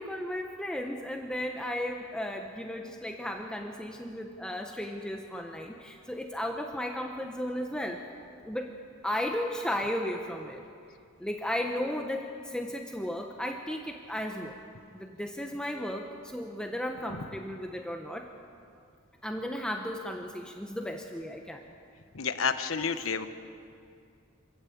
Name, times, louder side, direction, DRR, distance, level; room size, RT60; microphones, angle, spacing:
voice 1, 0.0-8.0 8.4-8.7 9.0-10.6 11.2-14.5 14.9-18.3 19.2-21.6, left 1 dB, 5° left, 2 dB, 1.0 m, -35 dB
voice 2, 22.1-23.3, left 6 dB, 80° left, 9 dB, 1.2 m, -30 dB
26.0 x 14.5 x 8.6 m, 2.5 s
head